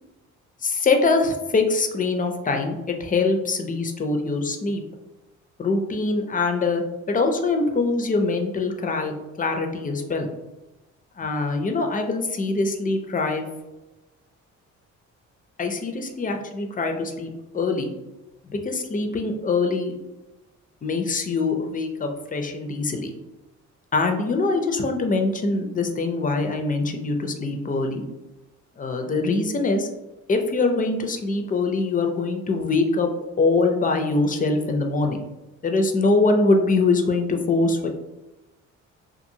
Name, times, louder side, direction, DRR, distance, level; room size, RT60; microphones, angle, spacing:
voice 1, 0.6-4.8 5.6-6.8 7.1-10.3 11.2-13.4 15.6-17.9 18.4-19.9 20.8-23.1 23.9-28.0 28.8-29.9 30.3-35.2 35.6-37.9, left 3 dB, 30° left, 4 dB, 0.4 m, -23 dB
2.6 x 2.4 x 2.7 m, 1.0 s
cardioid pair, 90°, 30 cm